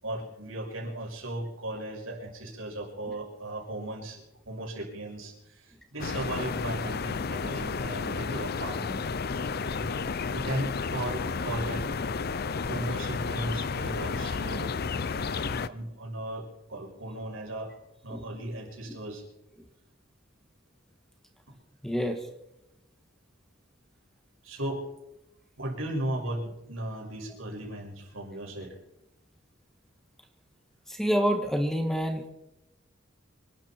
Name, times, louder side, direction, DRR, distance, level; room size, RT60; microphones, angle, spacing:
voice 1, 0.0-9.0 9.7-11.8 12.7-14.7 15.4-17.8 18.0-19.2 21.5-21.6 24.4-24.8 25.6-28.7, right 1 dB, 90° right, -1 dB, 6.2 m, -36 dB
sound 1, 6.0-15.7, left 4 dB, 50° left, 0.6 m, -32 dB
voice 2, 21.8-22.2 31.0-32.3, equal, ahead, 5 dB, 1.6 m, -27 dB
26.5 x 12.0 x 4.5 m, 0.88 s
head